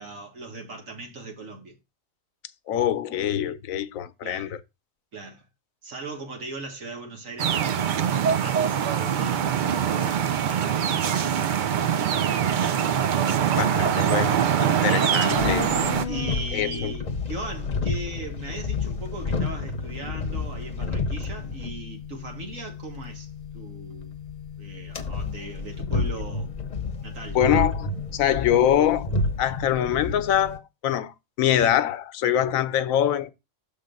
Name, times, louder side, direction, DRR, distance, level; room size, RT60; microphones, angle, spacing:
voice 1, 0.0-1.8 4.2-4.5 5.1-5.4 5.8-11.4 14.9-15.2 16.1-24.2 24.6-26.5 27.0-27.4, right 2 dB, 80° right, 1.9 m, -38 dB
voice 2, 2.7-4.6 13.6-15.7 16.5-16.9 27.3-33.3, left 10 dB, 90° left, 1.1 m, -24 dB
sound 1, 7.4-16.0, right 8 dB, 65° right, 0.5 m, -23 dB
sound 2, 15.3-30.6, left 3 dB, 40° left, 0.7 m, -31 dB
6.6 x 3.7 x 5.2 m
omnidirectional pair, 1.4 m